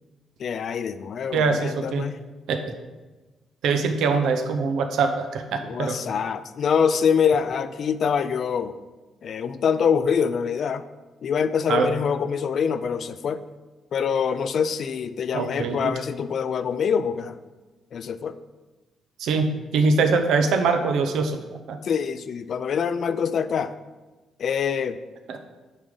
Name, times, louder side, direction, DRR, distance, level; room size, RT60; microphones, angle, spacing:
voice 1, 0.4-2.2 5.6-8.8 9.2-10.8 11.2-13.4 13.9-17.3 17.9-18.4 21.8-23.7 24.4-25.0, left 7 dB, 55° left, 13 dB, 0.4 m, -25 dB
voice 2, 1.3-2.1 2.5-2.7 3.6-6.0 11.7-11.9 15.3-15.9 19.2-21.8 25.3-25.4, right 4 dB, 80° right, 6 dB, 0.8 m, -23 dB
9.2 x 5.0 x 3.9 m, 1.2 s
cardioid pair, 105°, 0 cm